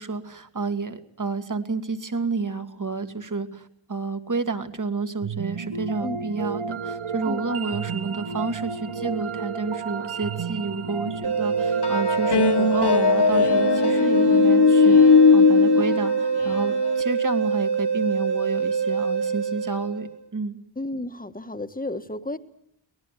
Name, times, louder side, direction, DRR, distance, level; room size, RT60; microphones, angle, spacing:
voice 1, 0.0-20.6, right 4 dB, 40° right, 9 dB, 2.0 m, -30 dB
sound 1, 5.2-14.4, right 5 dB, 80° right, 1.2 m, -33 dB
sound 2, 11.2-20.2, right 6 dB, 60° right, 5.0 m, -25 dB
sound 3, 11.8-17.0, left 5 dB, 55° left, 1.2 m, -18 dB
voice 2, 20.7-22.4, left 2 dB, 20° left, 9 dB, 1.5 m, -32 dB
24.0 x 19.5 x 9.2 m, 0.73 s
wide cardioid pair, 90°, 47 cm